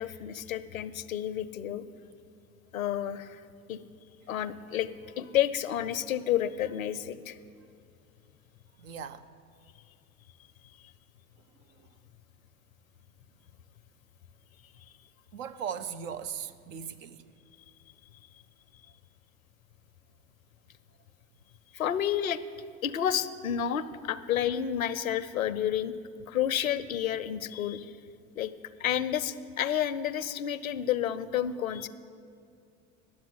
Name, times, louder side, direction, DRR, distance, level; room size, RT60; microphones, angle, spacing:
voice 1, 0.0-1.8 2.7-3.4 3.7-3.8 4.3-4.9 5.2-7.4 21.7-22.4 22.8-26.0 26.3-27.9 28.4-28.5 28.8-31.9, left 10 dB, 90° left, 0.5 m, -30 dB
voice 2, 8.8-9.3 11.7-11.9 15.3-17.2, right 7 dB, 75° right, 0.7 m, -38 dB
10.5 x 7.5 x 9.4 m
hypercardioid pair, 70°, 40 cm